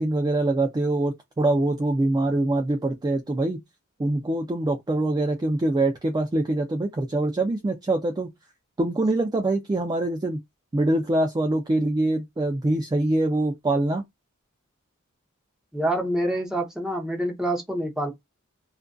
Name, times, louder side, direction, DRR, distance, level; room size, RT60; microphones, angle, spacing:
voice 1, 0.0-3.6 4.0-8.3 8.8-10.4 10.7-14.0, right 2 dB, 20° right, 0.3 m, -24 dB
voice 2, 15.7-18.1, right 1 dB, 5° right, 0.7 m, -26 dB
2.4 x 2.4 x 2.2 m
head